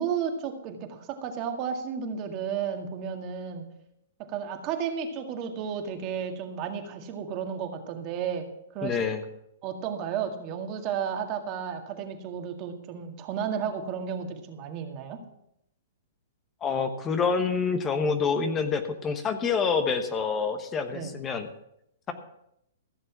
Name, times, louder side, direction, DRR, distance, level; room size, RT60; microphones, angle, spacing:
voice 1, 0.0-3.7 4.2-8.5 8.7-9.0 9.6-15.2 20.9-21.1, right 7 dB, 40° right, 4 dB, 1.9 m, -33 dB
voice 2, 8.8-9.2 16.6-21.5, left 5 dB, 20° left, 7 dB, 1.1 m, -27 dB
15.0 x 6.7 x 6.1 m, 0.78 s
hypercardioid pair, 130°, 0 cm